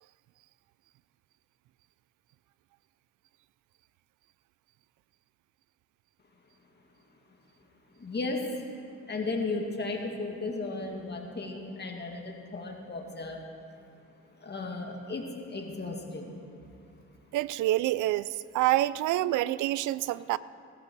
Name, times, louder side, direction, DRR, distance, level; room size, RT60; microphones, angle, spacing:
voice 1, 8.0-8.7 9.1-13.4 14.4-16.4 19.2-19.4, left 3 dB, 35° left, 1 dB, 2.3 m, -35 dB
voice 2, 17.3-18.3 18.5-20.4, right 15 dB, 80° right, 19 dB, 0.5 m, -27 dB
18.0 x 13.5 x 4.7 m, 2.6 s
cardioid pair, 90°, 30 cm